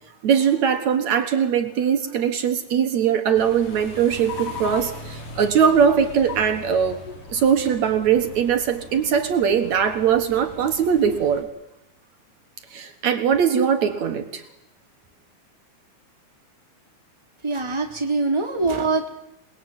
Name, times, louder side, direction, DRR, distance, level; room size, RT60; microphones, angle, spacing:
voice 1, 0.2-11.5 12.7-14.4, right 7 dB, 65° right, 7 dB, 2.8 m, -21 dB
sound 1, 3.3-11.4, left 4 dB, 85° left, 5.3 m, -39 dB
voice 2, 17.4-19.1, right 3 dB, 10° right, 3 dB, 3.0 m, -23 dB
28.0 x 21.0 x 9.0 m, 0.87 s
omnidirectional pair, 3.5 m